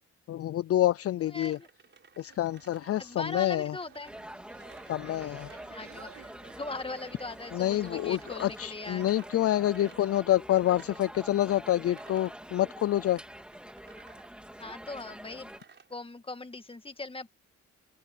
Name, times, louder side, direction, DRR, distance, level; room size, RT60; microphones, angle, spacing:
voice 1, 0.3-1.6 2.2-3.8 4.9-5.5 7.5-13.2, left 13 dB, 50° left, 0.5 m, -27 dB
voice 2, 1.3-1.7 3.0-4.2 5.0-9.1 14.6-15.6 15.9-17.3, left 3 dB, 20° left, 2.1 m, -40 dB
sound 1, 1.4-16.0, right 5 dB, 40° right, 5.4 m, -58 dB
sound 2, 2.3-8.4, right 10 dB, 70° right, 4.5 m, -56 dB
sound 3, 4.1-15.6, equal, 5° right, 2.8 m, -46 dB
open air
cardioid pair, 90°, 30 cm